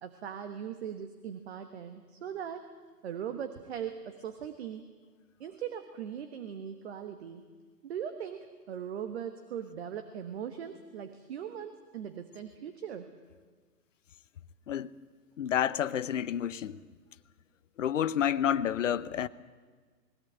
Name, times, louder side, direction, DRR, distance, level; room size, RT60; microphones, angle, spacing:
voice 1, 0.0-2.7 3.0-4.8 5.4-7.4 7.8-13.1, right 8 dB, 40° right, 1.4 m, -40 dB
voice 2, 15.4-16.8 17.8-19.3, left 9 dB, 50° left, 0.8 m, -29 dB
20.5 x 17.0 x 8.8 m
figure-of-eight pair, 140°, 50 cm